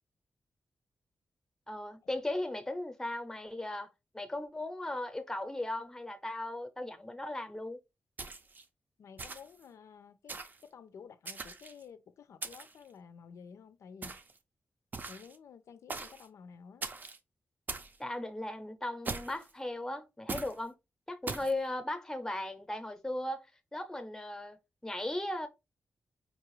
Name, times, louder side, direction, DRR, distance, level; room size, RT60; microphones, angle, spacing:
voice 1, 1.7-3.9 4.1-7.8 18.0-20.7 21.1-23.5 23.7-25.5, left 1 dB, 10° left, 0.7 m, -37 dB
sound 1, 8.2-8.6 9.2-9.6 10.3-10.6 11.2-11.8 12.4-12.8 14.0-14.4 14.9-15.4 15.9-16.3 16.8-17.2 17.7-18.0 19.0-19.5 20.3-20.6 21.3-21.5, right 3 dB, 40° right, 0.5 m, -40 dB
voice 2, 9.0-14.2 15.1-16.8, left 6 dB, 85° left, 0.4 m, -52 dB
5.2 x 2.4 x 3.0 m
wide cardioid pair, 140°, 5 cm